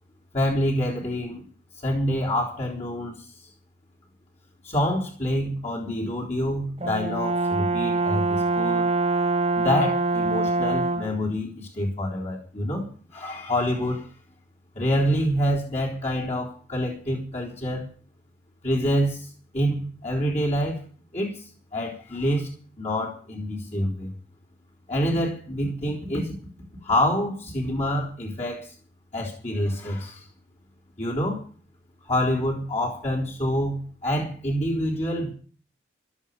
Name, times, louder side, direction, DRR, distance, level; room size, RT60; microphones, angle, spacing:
voice 1, 0.3-1.4 1.8-3.2 4.6-8.9 9.6-12.9 13.1-14.1 14.8-17.9 18.6-19.3 19.5-20.8 21.1-22.5 22.8-24.1 24.9-26.4 26.8-28.7 29.1-30.2 31.0-31.4 32.0-35.3, equal, 35° left, -4 dB, 3.7 m, -26 dB
Brass instrument, 6.8-11.2, right 3 dB, 30° right, 1.0 m, -24 dB
16.0 x 13.0 x 5.4 m, 0.40 s
head